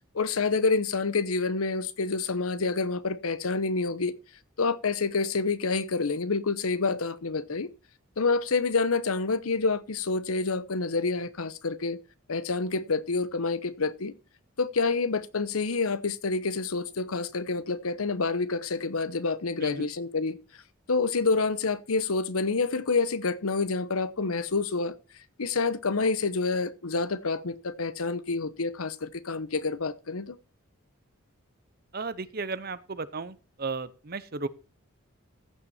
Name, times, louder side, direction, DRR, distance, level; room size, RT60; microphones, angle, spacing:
voice 1, 0.1-4.1 4.6-7.7 8.2-12.0 12.3-14.1 14.6-20.4 20.9-25.0 25.4-30.4, left 4 dB, 85° left, 0.9 m, -28 dB
voice 2, 31.9-34.5, right 4 dB, 45° right, 0.8 m, -34 dB
14.5 x 7.0 x 4.3 m
head